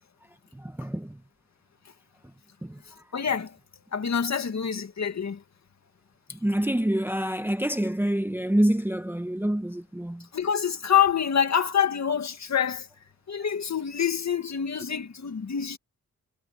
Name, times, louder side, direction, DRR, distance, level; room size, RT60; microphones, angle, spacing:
voice 1, 0.5-1.2 2.6-2.8 6.4-10.3, right 1 dB, 5° right, 0.9 m, -26 dB
voice 2, 3.1-3.5 3.9-5.4 10.3-12.9 13.3-15.8, left 8 dB, 55° left, 2.0 m, -26 dB
wide cardioid pair, 170°, 33 cm